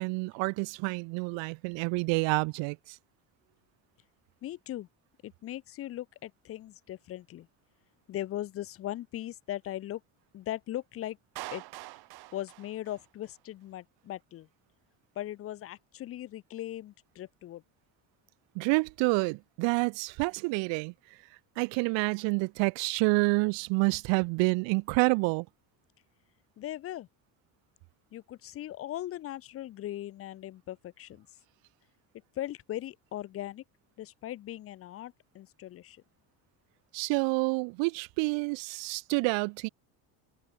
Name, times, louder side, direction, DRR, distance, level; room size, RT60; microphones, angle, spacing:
voice 1, 0.0-3.0 18.5-20.9 21.6-25.5 36.9-39.7, right 29 dB, 90° right, 0.9 m, -28 dB
voice 2, 4.4-4.9 5.2-7.5 8.1-10.0 10.3-11.2 11.5-11.6 12.3-14.5 15.2-17.6 26.6-27.1 28.1-31.3 32.3-33.6 34.0-36.0, left 13 dB, 35° left, 0.5 m, -39 dB
Clapping, 11.4-13.4, right 18 dB, 60° right, 2.1 m, -44 dB
cardioid pair, 165°, 43 cm